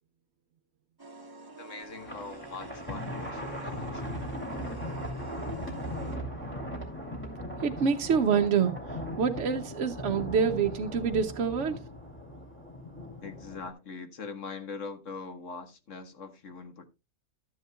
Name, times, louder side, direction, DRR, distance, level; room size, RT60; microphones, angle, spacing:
sound 1, 1.0-6.2, right 2 dB, 15° right, 1.3 m, -48 dB
voice 1, 1.6-4.3 13.2-16.9, left 4 dB, 65° left, 1.7 m, -42 dB
Thunder, 1.9-13.7, equal, 10° left, 2.8 m, -38 dB
voice 2, 7.6-8.7 9.2-11.8, right 6 dB, 60° right, 1.0 m, -26 dB
13.0 x 10.5 x 2.2 m
omnidirectional pair, 1.4 m